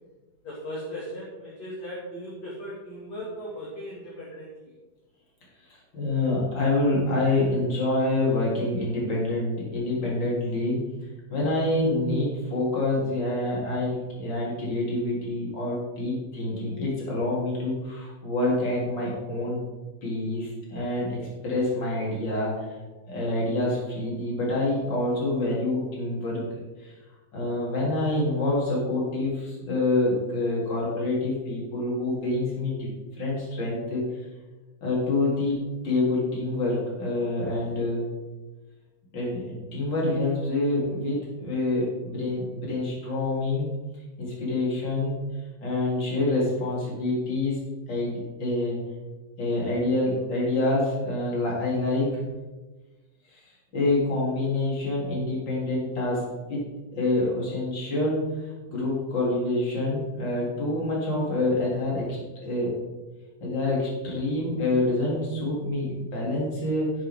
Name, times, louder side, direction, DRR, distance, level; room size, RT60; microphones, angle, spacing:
voice 1, 0.4-4.5, equal, 45° left, -6 dB, 2.9 m, -37 dB
voice 2, 5.9-10.8 11.3-19.6 20.0-21.2 21.4-22.7 23.1-26.4 26.8-26.9 27.3-32.9 33.2-34.1 34.8-38.1 39.1-43.7 44.2-45.2 45.6-48.8 49.4-52.2 53.7-56.2 56.5-56.6 57.0-58.2 58.6-62.1 62.4-62.8 63.4-66.9, left 2 dB, 30° left, -5 dB, 3.7 m, -26 dB
11.0 x 9.8 x 3.7 m, 1.2 s
omnidirectional pair, 4.7 m